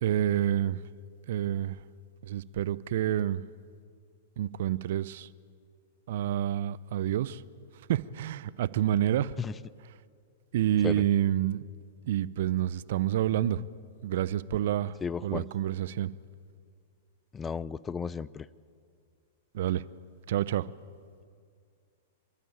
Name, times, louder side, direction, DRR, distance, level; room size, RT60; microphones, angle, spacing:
voice 1, 0.0-0.8 1.3-1.8 2.2-3.4 4.4-5.3 6.1-7.4 7.9-9.3 10.5-11.6 12.1-13.6 14.0-15.0 15.2-16.1 19.5-19.8 20.3-20.7, right 11 dB, 65° right, 18 dB, 0.6 m, -28 dB
voice 2, 15.0-15.5 17.3-18.5, left 6 dB, 20° left, 20 dB, 0.5 m, -34 dB
27.0 x 13.0 x 8.9 m, 2.2 s
hypercardioid pair, 115°, 0 cm